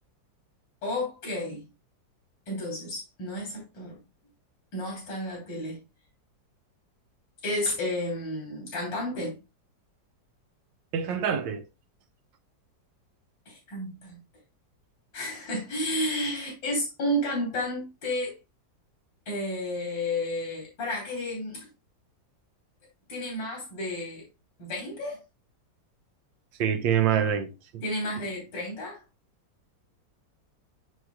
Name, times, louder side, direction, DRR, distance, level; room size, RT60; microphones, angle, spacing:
voice 1, 0.8-1.6 2.5-4.0 4.7-5.8 7.4-9.4 13.5-14.2 15.1-18.4 19.3-21.7 23.1-24.3 24.6-25.2 27.8-29.0, left 1 dB, 85° left, 3.6 m, -32 dB
voice 2, 10.9-11.7 26.6-27.8, right 8 dB, 85° right, 1.5 m, -26 dB
7.1 x 6.3 x 2.3 m
omnidirectional pair, 2.0 m